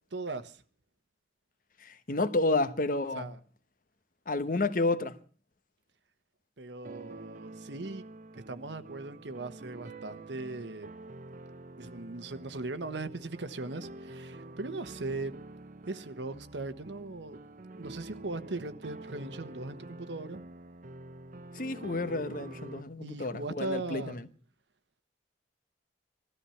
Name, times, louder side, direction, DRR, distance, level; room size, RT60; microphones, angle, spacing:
voice 1, 0.1-0.6 3.1-3.4 6.6-8.0 8.5-10.9 11.8-15.4 15.9-17.4 17.8-20.4 23.0-24.2, right 2 dB, 80° right, 1.1 m, -39 dB
voice 2, 1.8-3.3 4.3-5.2 21.5-24.2, left 2 dB, 50° left, 1.1 m, -30 dB
sound 1, 6.8-22.8, right 2 dB, 45° right, 0.8 m, -47 dB
18.5 x 13.5 x 5.7 m
head